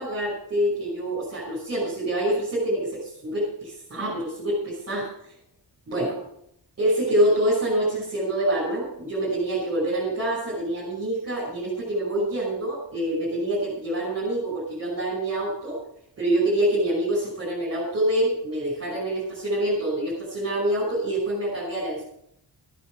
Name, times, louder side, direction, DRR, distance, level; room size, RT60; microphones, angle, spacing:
voice 1, 0.0-5.1 5.9-6.2 6.8-15.8 16.2-22.0, right 1 dB, 35° right, -5 dB, 6.0 m, -26 dB
14.5 x 10.0 x 6.7 m, 0.71 s
wide cardioid pair, 160°, 42 cm